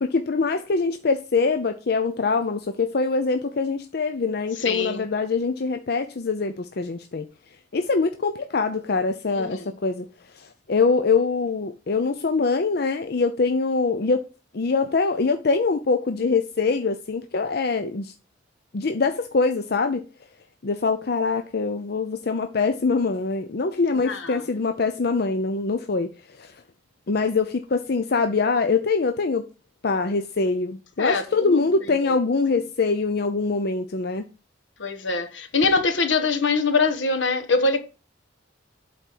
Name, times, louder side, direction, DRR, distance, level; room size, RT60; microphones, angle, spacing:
voice 1, 0.0-7.3 7.7-10.0 10.4-14.2 14.5-18.1 18.7-20.0 20.6-26.1 26.4-26.5 27.1-29.4 29.8-34.2, left 4 dB, 55° left, 0.6 m, -24 dB
voice 2, 4.6-5.1 9.3-9.7 23.9-24.5 31.0-31.6 32.0-32.2 34.8-37.8, left 3 dB, 75° left, 1.3 m, -24 dB
8.1 x 4.3 x 6.1 m
head